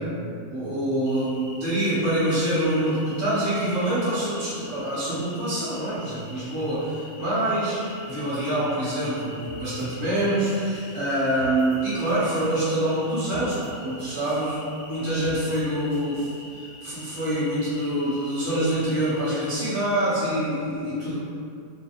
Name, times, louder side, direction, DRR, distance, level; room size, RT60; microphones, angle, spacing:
voice 1, 0.0-16.2 16.5-21.1, right 1 dB, 80° right, -10 dB, 1.5 m, -26 dB
sound 1, 1.0-19.6, left 2 dB, 80° left, 1.1 m, -45 dB
sound 2, 9.4-9.9 10.1-11.8 12.1-12.5 13.3-13.7 14.0-14.5 15.2-15.6 15.9-16.4, right 1 dB, 40° left, 1.0 m, -48 dB
3.2 x 2.5 x 2.3 m, 2.4 s
omnidirectional pair, 1.5 m